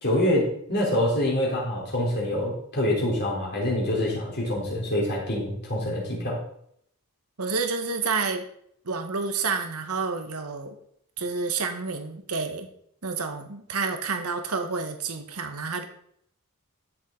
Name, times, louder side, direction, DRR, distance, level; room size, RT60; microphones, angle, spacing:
voice 1, 0.0-6.4, left 1 dB, 50° left, -3 dB, 3.8 m, -26 dB
voice 2, 7.4-8.4 8.8-10.7 11.2-12.7 13.0-15.8, right 4 dB, 80° right, 6 dB, 1.4 m, -29 dB
13.0 x 7.4 x 4.0 m, 0.68 s
head